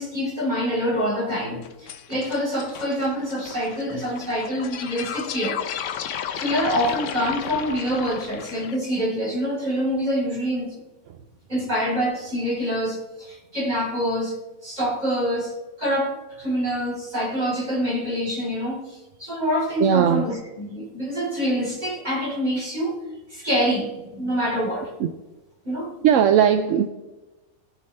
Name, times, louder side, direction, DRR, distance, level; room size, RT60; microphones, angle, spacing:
voice 1, 0.0-5.6 6.3-10.8 11.5-14.4 14.6-23.0 23.3-24.9 25.6-25.9, equal, 25° right, -5 dB, 3.9 m, -26 dB
sound 1, 1.6-8.8, left 9 dB, 65° left, 0.9 m, -34 dB
voice 2, 19.8-20.2 25.0-25.2 26.0-26.9, right 9 dB, 65° right, 8 dB, 0.8 m, -18 dB
18.5 x 7.3 x 3.3 m, 1.1 s
omnidirectional pair, 1.6 m